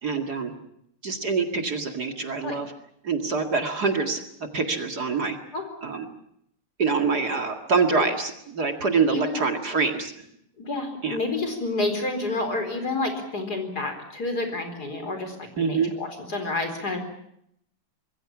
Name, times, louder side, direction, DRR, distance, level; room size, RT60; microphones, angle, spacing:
voice 1, 0.0-0.5 1.0-2.7 3.0-5.4 5.8-6.1 6.8-10.1 11.0-11.2 15.6-15.9, right 4 dB, 45° right, 5 dB, 2.5 m, -25 dB
voice 2, 9.1-9.4 10.6-17.0, left 2 dB, 45° left, 5 dB, 4.8 m, -29 dB
26.0 x 21.5 x 7.2 m, 0.74 s
omnidirectional pair, 2.4 m